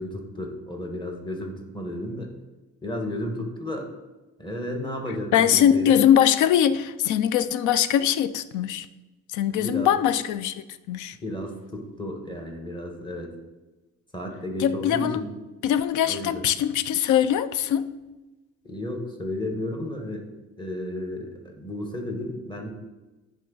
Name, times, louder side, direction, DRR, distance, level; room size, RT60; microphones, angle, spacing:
voice 1, 0.0-2.3 2.8-3.9 4.4-6.0 9.5-10.0 11.2-13.3 14.1-15.3 16.0-16.5 18.6-20.3 20.6-22.7, left 1 dB, 15° left, 1 dB, 1.4 m, -33 dB
voice 2, 5.3-8.9 9.3-11.2 14.6-15.2 15.6-17.9, left 10 dB, 80° left, 14 dB, 0.5 m, -22 dB
10.0 x 3.8 x 3.9 m, 1.1 s
cardioid pair, 90°, 30 cm